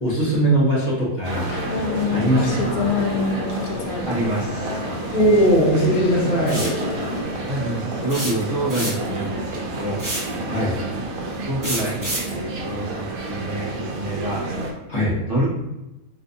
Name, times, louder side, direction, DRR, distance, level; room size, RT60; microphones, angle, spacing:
voice 1, 0.0-1.5 2.1-2.9 5.1-6.7 10.5-10.8 14.9-15.2, right 1 dB, 35° left, -6 dB, 1.2 m, -20 dB
sound 1, 1.2-14.7, right 2 dB, 80° right, 1.1 m, -30 dB
sound 2, 1.3-7.2, left 4 dB, 80° left, 1.0 m, -28 dB
voice 2, 4.1-4.8 7.4-10.0 11.5-14.5 15.3-15.5, right 1 dB, 40° right, -7 dB, 1.3 m, -27 dB
sound 3, 6.5-6.8 8.1-9.2 10.0-10.4 11.6-12.3, right 1 dB, 20° right, 0.6 m, -28 dB
3.4 x 3.0 x 2.6 m, 0.98 s
omnidirectional pair, 1.5 m